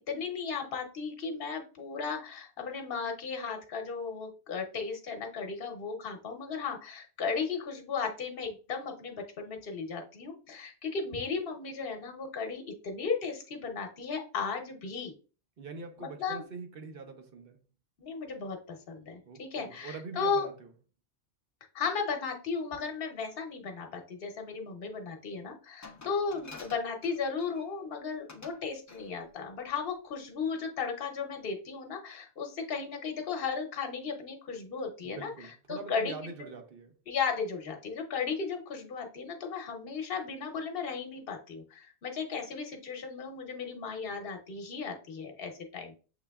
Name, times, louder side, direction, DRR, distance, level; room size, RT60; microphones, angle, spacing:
voice 1, 0.1-15.1 16.0-16.4 18.0-20.5 21.7-35.3 35.7-36.1 36.4-36.5 37.1-45.9, left 5 dB, 55° left, 1.1 m, -35 dB
voice 2, 15.6-17.6 19.3-20.7 35.0-36.9, right 4 dB, 55° right, 0.9 m, -44 dB
Glass, 25.8-27.7 28.3-28.6 28.9-29.1, left 3 dB, 25° left, 0.4 m, -49 dB
7.0 x 3.2 x 2.3 m
omnidirectional pair, 1.2 m